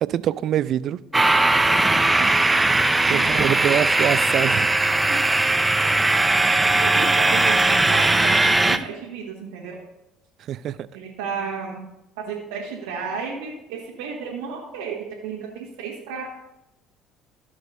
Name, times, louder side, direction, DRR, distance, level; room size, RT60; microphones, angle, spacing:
voice 1, 0.0-1.0 3.1-5.0 10.5-10.8, right 11 dB, 55° right, 18 dB, 0.3 m, -24 dB
sound 1, 1.1-8.8, right 2 dB, 15° right, 0.6 m, -19 dB
voice 2, 2.4-2.8 3.1-3.5 5.1-5.2 6.8-8.8 9.0-9.8 10.9-11.8 12.3-15.5 15.8-16.3, right 5 dB, 80° right, -4 dB, 1.3 m, -33 dB
14.5 x 6.2 x 2.6 m, 0.91 s
hypercardioid pair, 60°, 0 cm